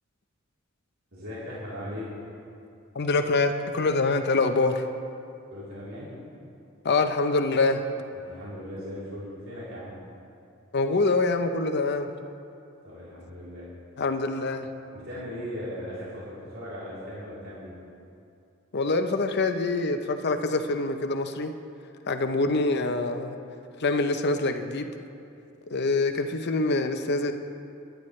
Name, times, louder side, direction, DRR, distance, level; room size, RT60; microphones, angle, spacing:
voice 1, 1.1-2.1 5.5-6.1 8.1-9.9 12.8-13.7 14.9-17.7, equal, 85° right, -9 dB, 3.6 m, -38 dB
voice 2, 2.9-4.8 6.8-7.8 10.7-12.1 14.0-14.7 18.7-21.5 22.1-23.4 23.8-24.9 25.7-27.3, left 3 dB, 55° left, 7 dB, 0.7 m, -25 dB
21.0 x 10.5 x 3.3 m, 2.6 s
head